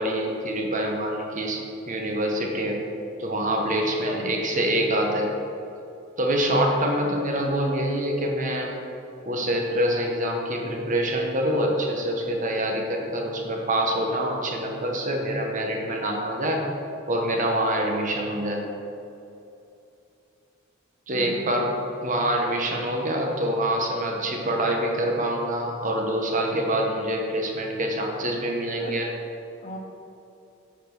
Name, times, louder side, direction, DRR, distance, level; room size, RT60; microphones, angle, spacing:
voice 1, 0.0-2.8 3.2-5.3 6.2-8.8 9.2-16.6 17.1-18.6 21.1-21.8 22.0-29.1, right 1 dB, 40° right, 1 dB, 1.0 m, -25 dB
voice 2, 21.1-21.6 28.8-29.0 29.6-29.8, equal, 40° left, 0 dB, 1.0 m, -37 dB
8.5 x 4.3 x 5.9 m, 2.8 s
head